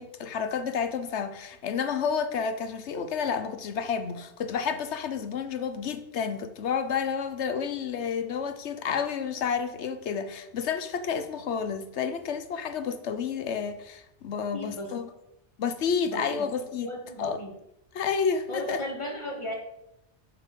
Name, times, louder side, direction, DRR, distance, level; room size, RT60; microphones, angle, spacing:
voice 1, 0.0-15.1 15.6-16.9 17.2-17.4 17.9-18.8, left 6 dB, 70° left, 1.1 m, -30 dB
voice 2, 14.5-14.9 16.1-16.5 16.8-17.5 18.5-19.5, left 1 dB, 25° left, 2.2 m, -35 dB
7.6 x 4.9 x 6.9 m
omnidirectional pair, 1.2 m